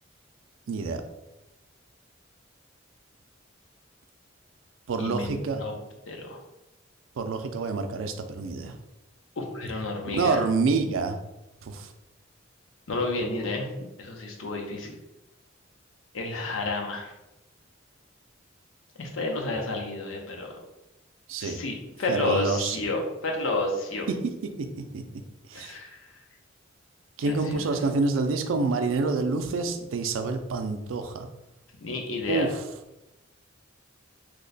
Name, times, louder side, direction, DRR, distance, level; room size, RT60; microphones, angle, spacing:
voice 1, 0.7-1.0 4.9-5.6 7.2-8.8 10.1-11.2 11.6-11.9 21.3-21.6 22.1-22.8 24.6-24.7 24.9-25.0 25.5-25.8 27.2-31.3 32.3-32.5, right 4 dB, 80° right, 7 dB, 0.4 m, -27 dB
voice 2, 5.0-5.7 6.1-6.4 9.4-10.4 12.9-13.7 14.0-15.0 16.1-17.1 19.0-20.5 21.4-24.1 25.5-26.0 27.3-27.7 31.8-32.5, left 2 dB, 85° left, 2 dB, 0.6 m, -31 dB
2.9 x 2.1 x 3.9 m, 0.96 s
head